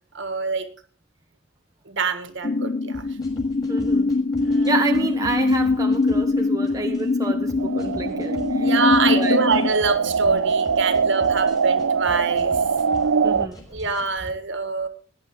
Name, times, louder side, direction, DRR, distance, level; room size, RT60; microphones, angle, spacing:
voice 1, 0.1-0.7 1.9-3.0 4.4-4.7 8.6-12.6 13.7-14.9, right 4 dB, 60° right, 1.8 m, -25 dB
sound 1, 2.4-9.7, left 3 dB, 40° left, 0.6 m, -22 dB
sound 2, 2.9-14.3, equal, 20° left, 4.9 m, -43 dB
voice 2, 3.7-4.1 4.6-8.7 9.1-9.4 13.2-13.6, right 3 dB, 15° right, 1.0 m, -29 dB
sound 3, 7.6-13.5, right 5 dB, 85° right, 0.6 m, -22 dB
18.0 x 10.0 x 3.8 m
head